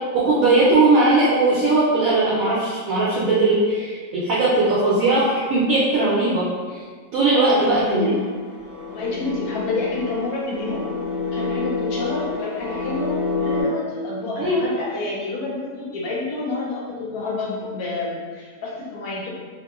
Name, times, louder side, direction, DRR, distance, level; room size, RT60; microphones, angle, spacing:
voice 1, 0.1-6.8 7.1-8.2 14.4-14.6, right 2 dB, 70° right, -7 dB, 0.8 m, -19 dB
sound 1, 7.7-13.6, left 4 dB, 85° left, 1.3 m, -28 dB
voice 2, 8.9-10.9 11.3-19.3, left 2 dB, 70° left, -4 dB, 1.0 m, -29 dB
2.9 x 2.1 x 2.3 m, 1.6 s
omnidirectional pair, 1.9 m